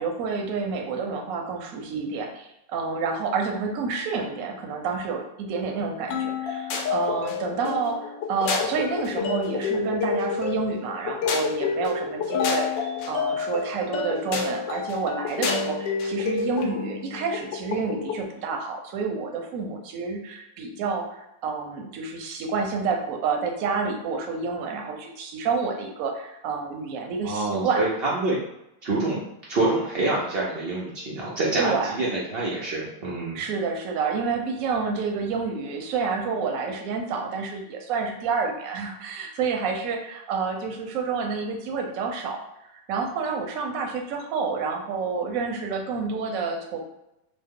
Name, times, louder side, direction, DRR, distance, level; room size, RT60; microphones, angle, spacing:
voice 1, 0.0-27.8 31.6-31.9 33.3-46.8, right 5 dB, 65° right, 2 dB, 0.9 m, -29 dB
sound 1, 6.1-18.2, left 5 dB, 90° left, 1.3 m, -28 dB
voice 2, 27.2-28.4 28.8-29.2 29.5-33.4, right 2 dB, 80° right, -5 dB, 0.5 m, -26 dB
3.0 x 2.1 x 3.5 m, 0.86 s
omnidirectional pair, 1.9 m